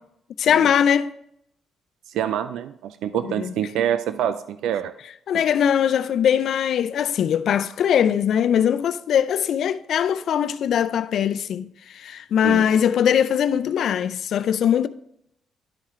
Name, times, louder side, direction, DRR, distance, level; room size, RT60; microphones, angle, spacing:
voice 1, 0.4-1.2 3.4-3.5 5.3-14.9, left 9 dB, 70° left, 0.4 m, -21 dB
voice 2, 2.1-5.0 5.3-5.4 12.4-12.7, right 10 dB, 85° right, 0.3 m, -26 dB
11.5 x 4.3 x 3.7 m
cardioid pair, 90°, 0 cm